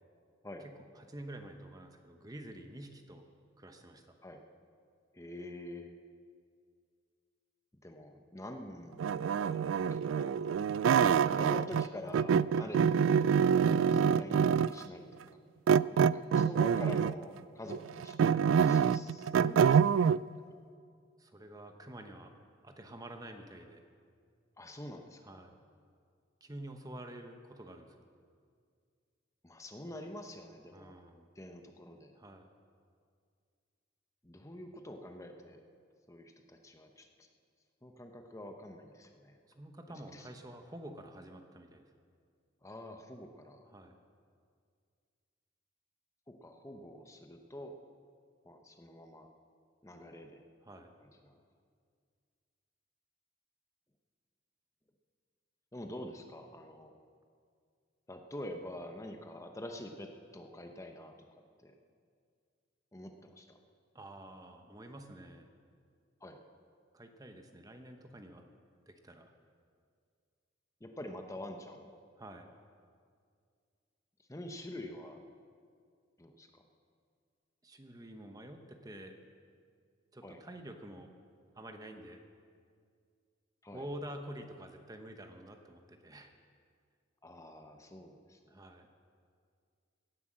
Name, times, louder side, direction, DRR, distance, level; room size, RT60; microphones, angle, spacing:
voice 1, 0.6-3.3 3.6-4.2 12.5-12.7 21.2-22.4 22.6-23.8 25.2-25.6 26.4-28.1 30.7-31.3 32.2-32.5 39.5-41.9 43.7-44.0 50.6-50.9 63.9-65.5 66.9-68.5 68.9-69.3 72.2-72.5 77.6-79.2 80.1-81.1 81.5-82.2 83.7-86.3 88.5-88.9, right 1 dB, 20° right, 5 dB, 1.0 m, -48 dB
voice 2, 5.1-5.9 7.8-10.4 11.3-15.0 15.3-15.4 16.1-20.2 24.6-25.4 29.4-30.9 31.4-32.1 34.2-35.6 36.1-37.3 37.8-39.4 39.9-40.3 42.6-43.6 46.3-47.8 48.4-49.3 49.8-50.4 51.2-51.3 55.7-56.9 58.1-61.7 62.9-63.6 66.2-66.4 70.8-71.9 74.3-75.2 76.2-76.6 80.2-80.4 83.6-83.8 87.2-88.6, left 1 dB, 15° left, 4 dB, 0.9 m, -46 dB
sound 1, 9.0-11.9 12.1-14.8 15.7-17.2 17.7-20.2, right 7 dB, 85° right, 0.3 m, -26 dB
17.0 x 10.5 x 7.4 m, 2.2 s
head